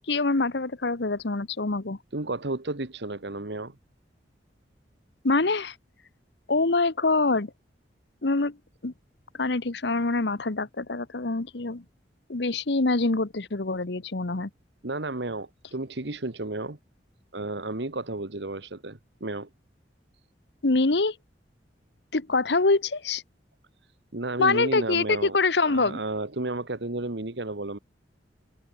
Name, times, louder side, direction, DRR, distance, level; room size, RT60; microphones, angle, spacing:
voice 1, 0.1-2.0 5.2-5.7 6.5-7.5 8.2-8.6 8.8-8.9 9.4-11.8 12.3-14.5 20.6-21.2 22.1-23.2 24.4-26.0, left 3 dB, 70° left, 1.1 m, -25 dB
voice 2, 2.1-3.8 14.8-16.8 17.3-19.5 24.1-25.4 25.6-27.8, right 2 dB, 70° right, 1.6 m, -32 dB
head